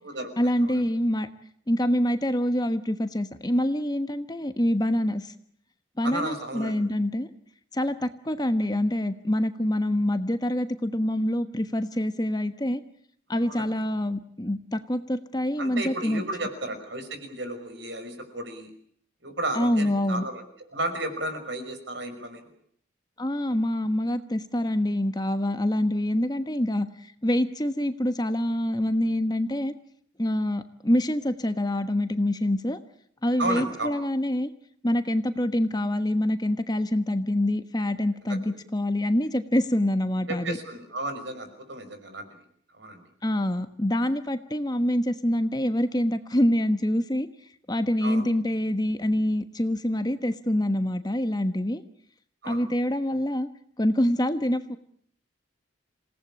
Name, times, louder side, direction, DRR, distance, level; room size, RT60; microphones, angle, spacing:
voice 1, 0.4-1.3 1.7-5.3 6.0-7.3 7.7-12.8 13.3-16.2 19.5-20.2 23.2-29.7 30.2-32.8 33.2-34.5 34.8-40.6 43.2-47.3 47.7-51.8 52.5-53.5 53.8-54.8, left 1 dB, 20° left, 10 dB, 1.2 m, -26 dB
voice 2, 6.0-6.8 13.5-13.7 15.6-18.7 19.2-20.4 20.7-22.4 33.4-33.9 40.3-42.3 42.8-43.0 48.0-48.3 52.4-52.7, right 1 dB, 60° right, 8 dB, 5.6 m, -33 dB
28.0 x 18.0 x 8.6 m, 0.64 s
head